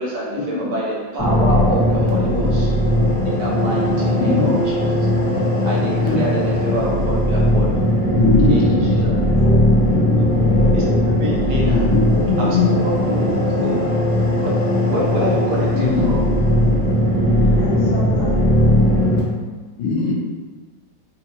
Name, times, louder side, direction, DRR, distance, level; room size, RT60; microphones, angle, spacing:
voice 1, 0.0-2.7 3.2-5.0 5.6-7.9 8.5-9.1 9.4-9.5 10.7-11.9 12.4-12.6 12.8-14.0 14.4-14.6 14.9-16.2, right 1 dB, 70° right, -5 dB, 1.4 m, -26 dB
sound 1, 1.2-19.2, left 1 dB, 15° left, 1.1 m, -18 dB
voice 2, 4.2-4.5 6.0-6.2 8.1-9.0 9.8-10.3 11.6-12.7 13.6-13.9 15.7-16.3 19.8-20.1, left 4 dB, 85° left, -2 dB, 1.4 m, -20 dB
voice 3, 11.8-12.5 13.2-13.6 17.5-18.8, left 2 dB, 65° left, -6 dB, 1.4 m, -31 dB
3.8 x 2.4 x 2.8 m, 1.4 s
omnidirectional pair, 2.1 m